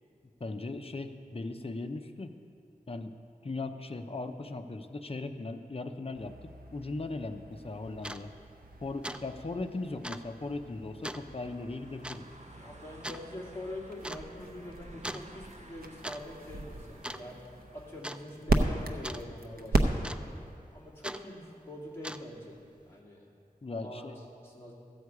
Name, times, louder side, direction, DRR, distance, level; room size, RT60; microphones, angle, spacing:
voice 1, 0.4-2.3 2.9-3.1 3.4-6.4 6.7-8.3 8.8-12.3 23.6-24.2, left 3 dB, 40° left, 6 dB, 0.6 m, -38 dB
sound 1, 6.1-20.5, right 2 dB, 75° right, 0.7 m, -36 dB
sound 2, 7.6-7.7 8.0-8.2 8.6-8.8 9.0-9.2 9.5-9.6 10.0-10.3 11.0-11.3 12.0-12.2 13.0-13.2 14.0-14.2 15.0-15.3 15.8-16.2 16.5-16.7 17.0-17.5 18.0-18.2 19.0-19.2 20.0-20.5 21.0-21.2 21.9-22.4, right 1 dB, 5° right, 0.3 m, -40 dB
sound 3, 11.2-17.9, right 1 dB, 50° right, 1.0 m, -54 dB
voice 2, 12.4-17.3 17.7-20.1 20.7-22.5 22.9-23.2 23.7-24.1 24.4-24.7, left 1 dB, 15° left, -5 dB, 2.5 m, -44 dB
14.0 x 8.1 x 4.8 m, 2.5 s
wide cardioid pair, 70°, 16 cm